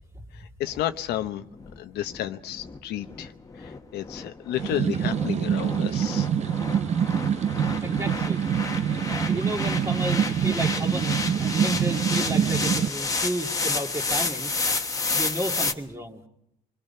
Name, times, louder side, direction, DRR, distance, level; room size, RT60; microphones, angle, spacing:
voice 1, 0.3-1.4 1.8-6.3 8.9-9.2, left 12 dB, 75° left, 1.0 m, -32 dB
sound 1, 0.7-15.7, left 3 dB, 20° left, 1.4 m, -31 dB
sound 2, 4.5-12.9, right 8 dB, 40° right, 0.7 m, -25 dB
voice 2, 7.8-8.4 9.1-14.5 15.1-16.2, equal, 15° right, 2.4 m, -32 dB
27.0 x 21.5 x 5.7 m
cardioid pair, 110°, 17 cm